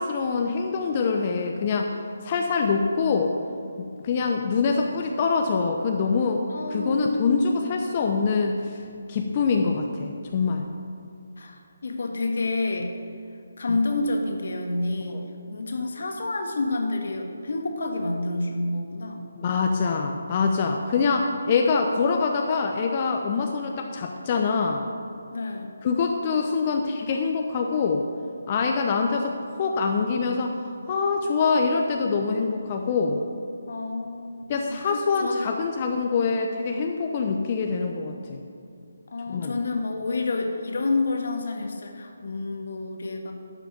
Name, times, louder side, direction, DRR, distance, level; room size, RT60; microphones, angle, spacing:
voice 1, 0.0-1.9 2.2-3.3 3.8-6.4 6.7-8.8 9.1-10.7 13.7-13.8 15.1-15.2 19.4-24.9 25.8-28.0 28.5-30.6 30.9-33.2 34.5-38.4 39.3-39.6, left 4 dB, 35° left, 2 dB, 0.7 m, -25 dB
voice 2, 6.5-7.7 11.4-12.9 13.6-19.2 25.3-25.7 33.7-34.4 34.7-35.6 39.1-43.3, left 2 dB, 60° left, 3 dB, 1.5 m, -29 dB
11.5 x 6.0 x 6.9 m, 2.5 s
figure-of-eight pair, 150°, 0 cm